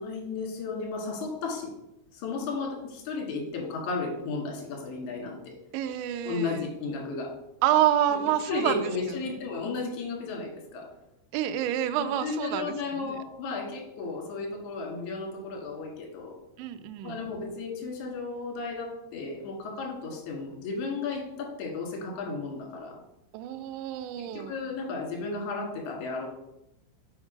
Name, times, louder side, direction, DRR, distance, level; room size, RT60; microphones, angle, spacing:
voice 1, 0.0-1.7 2.1-5.4 6.2-7.3 8.1-10.8 12.0-16.3 17.0-22.9 24.3-26.3, left 4 dB, 55° left, -1 dB, 2.3 m, -34 dB
voice 2, 5.7-6.7 7.6-8.9 9.3-9.4 11.3-13.2 16.6-17.2 23.3-24.6, right 11 dB, 90° right, 8 dB, 2.6 m, -28 dB
6.3 x 5.2 x 5.1 m, 0.87 s
omnidirectional pair, 5.8 m